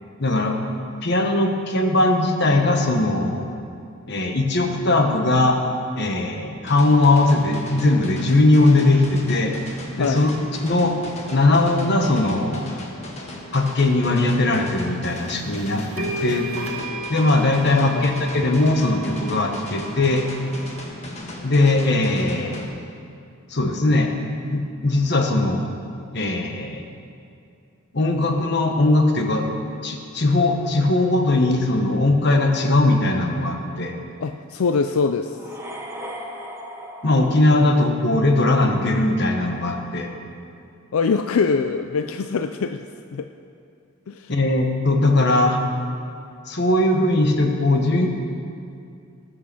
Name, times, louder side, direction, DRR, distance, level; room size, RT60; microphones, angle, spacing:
voice 1, 0.2-0.6 1.0-3.5 4.1-5.6 5.9-9.5 10.0-10.3 10.6-10.9 11.3-12.6 13.5-16.5 17.1-20.2 21.4-22.7 23.5-24.1 24.5-25.6 26.1-26.8 27.9-29.5 29.8-33.9 37.0-40.1 44.3-45.6 46.5-48.1, left 2 dB, 55° left, 3 dB, 1.2 m, -19 dB
sound 1, 6.7-22.7, left 1 dB, 30° left, 1.5 m, -37 dB
voice 2, 10.0-10.3 17.8-18.1 34.2-35.4 40.9-42.8 43.1-43.3 44.1-44.3, left 5 dB, 90° left, 7 dB, 0.4 m, -23 dB
sound 2, 15.4-15.5 16.0-20.8, right 1 dB, 90° right, 1.3 m, -34 dB
sound 3, 35.3-38.3, equal, 10° right, 0.9 m, -37 dB
19.0 x 6.4 x 6.2 m, 2.4 s
head